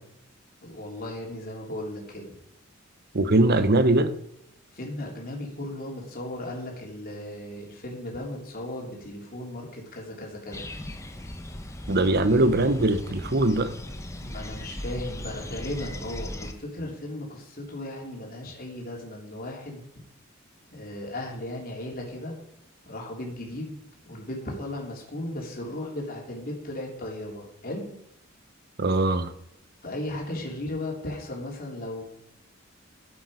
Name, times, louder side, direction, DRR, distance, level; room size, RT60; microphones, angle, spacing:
voice 1, 0.6-2.4 4.7-10.7 14.2-19.8 20.7-22.4 22.9-23.7 24.1-27.9 29.8-32.0, left 1 dB, 45° left, -1 dB, 3.3 m, -36 dB
voice 2, 3.1-4.1 11.9-13.7 28.8-29.3, right 2 dB, 50° right, 11 dB, 0.9 m, -21 dB
sound 1, 10.5-16.5, left 1 dB, 15° left, 0.9 m, -37 dB
12.5 x 8.1 x 5.0 m, 0.75 s
head